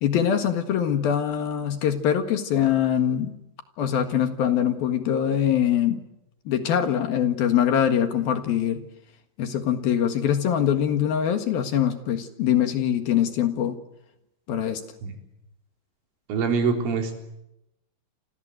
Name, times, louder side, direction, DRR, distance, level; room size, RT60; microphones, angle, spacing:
voice 1, 0.0-3.3 3.8-6.0 6.5-8.8 9.4-13.8 14.5-14.8, left 9 dB, 60° left, 8 dB, 3.1 m, -23 dB
voice 2, 16.3-17.2, right 5 dB, 90° right, 4 dB, 6.3 m, -24 dB
29.0 x 25.5 x 8.0 m, 0.87 s
omnidirectional pair, 5.5 m